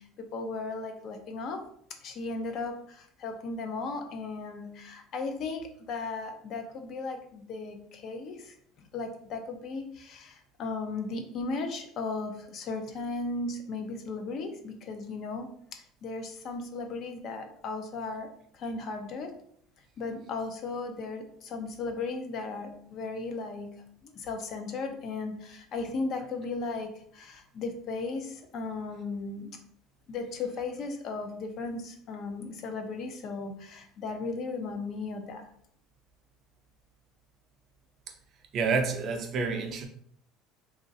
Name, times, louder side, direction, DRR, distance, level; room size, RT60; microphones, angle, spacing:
voice 1, 0.0-1.6 2.0-15.5 16.0-18.3 18.5-19.3 20.0-29.6 30.1-35.5, left 3 dB, 50° left, 5 dB, 0.5 m, -36 dB
voice 2, 38.5-39.9, right 4 dB, 45° right, 5 dB, 0.5 m, -28 dB
3.0 x 2.4 x 2.6 m, 0.63 s
cardioid pair, 125°, 0 cm